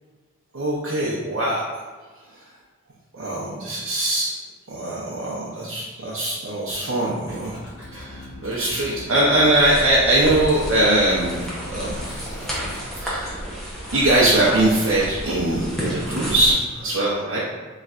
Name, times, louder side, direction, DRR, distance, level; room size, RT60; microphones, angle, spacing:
voice 1, 0.5-1.6 3.1-4.3 4.7-7.6 7.9-12.2 13.0-13.4 13.9-17.4, right 1 dB, 65° right, -8 dB, 0.7 m, -21 dB
sound 1, 7.2-12.8, left 1 dB, 65° left, 1.2 m, -39 dB
sound 2, 9.5-16.5, equal, ahead, 0.8 m, -31 dB
4.2 x 3.1 x 2.4 m, 1.4 s
head